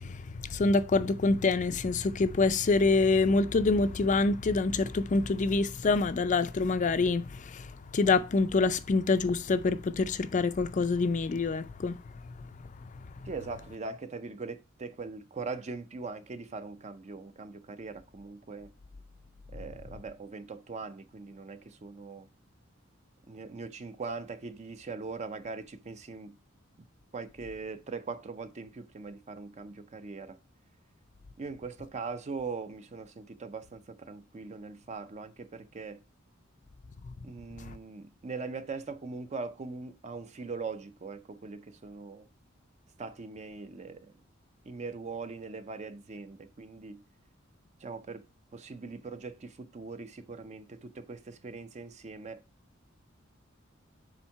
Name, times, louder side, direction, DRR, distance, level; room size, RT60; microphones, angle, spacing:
voice 1, 0.0-12.5 12.8-13.3 37.1-37.2 37.6-37.8, left 3 dB, 40° left, 0.4 m, -26 dB
voice 2, 13.2-18.7 19.5-22.3 23.3-26.4 26.8-26.9 27.1-30.4 31.4-36.0 37.2-42.3 43.0-44.1 44.6-47.0 47.8-52.4, right 4 dB, 35° right, 0.5 m, -41 dB
7.2 x 3.6 x 4.6 m
head